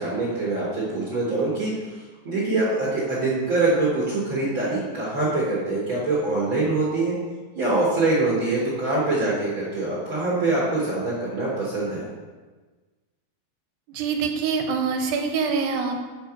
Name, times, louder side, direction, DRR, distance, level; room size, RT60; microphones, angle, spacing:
voice 1, 0.0-7.1 7.5-12.0, right 2 dB, 55° right, -7 dB, 1.5 m, -24 dB
voice 2, 13.9-16.0, right 5 dB, 80° right, 4 dB, 2.2 m, -25 dB
6.9 x 4.4 x 5.9 m, 1.3 s
omnidirectional pair, 4.1 m